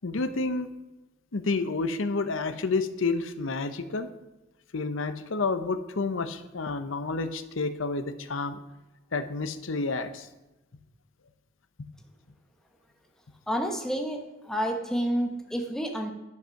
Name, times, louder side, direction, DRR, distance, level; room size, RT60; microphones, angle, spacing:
voice 1, 0.0-0.7 1.3-4.1 4.7-8.6 9.1-10.3, left 3 dB, 75° left, 10 dB, 0.7 m, -29 dB
voice 2, 13.5-16.1, equal, ahead, 3 dB, 0.9 m, -29 dB
10.5 x 5.5 x 5.8 m, 1.0 s
head